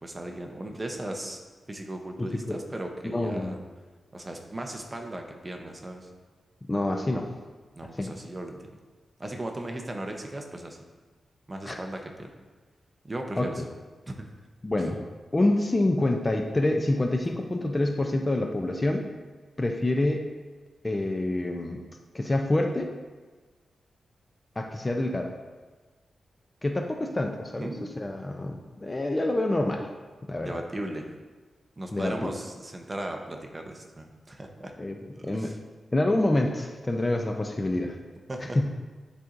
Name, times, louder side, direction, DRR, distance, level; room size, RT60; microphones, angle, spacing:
voice 1, 0.0-1.4 1.7-3.6 4.1-6.1 7.7-8.6 9.2-10.8 11.5-12.3 13.0-13.6 14.1-14.3 27.6-28.0 30.4-31.1 31.8-34.7 35.2-35.6 38.3-38.6, right 1 dB, 20° right, 3 dB, 0.6 m, -37 dB
voice 2, 2.2-2.6 3.0-3.6 6.7-7.3 8.0-8.1 11.7-11.8 13.4-13.5 14.6-15.1 15.3-19.1 19.6-20.3 20.8-21.8 22.1-22.9 24.6-25.3 26.6-29.9 30.3-30.5 31.9-32.3 34.8-35.5 35.9-38.0 38.6-38.7, left 1 dB, 20° left, 3 dB, 0.4 m, -27 dB
10.5 x 4.0 x 2.5 m, 1.3 s
wide cardioid pair, 145°, 0 cm